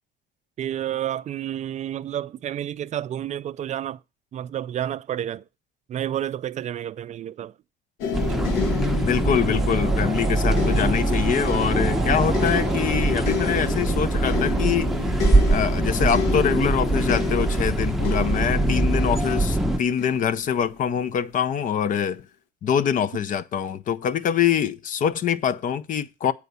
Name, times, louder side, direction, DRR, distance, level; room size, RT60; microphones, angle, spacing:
voice 1, 0.6-4.0 4.3-5.4 5.9-7.5, right 11 dB, 45° right, 0.4 m, -30 dB
sound 1, 8.0-21.1 21.9-22.1, left 7 dB, 85° left, 1.0 m, -32 dB
sound 2, 8.1-19.8, right 2 dB, ahead, 0.7 m, -23 dB
sound 3, 8.9-13.8, right 14 dB, 70° right, 0.8 m, -37 dB
voice 2, 9.0-15.0 15.5-22.2 22.6-26.3, left 8 dB, 50° left, 0.6 m, -24 dB
8.3 x 5.0 x 6.7 m
cardioid pair, 110°, 17 cm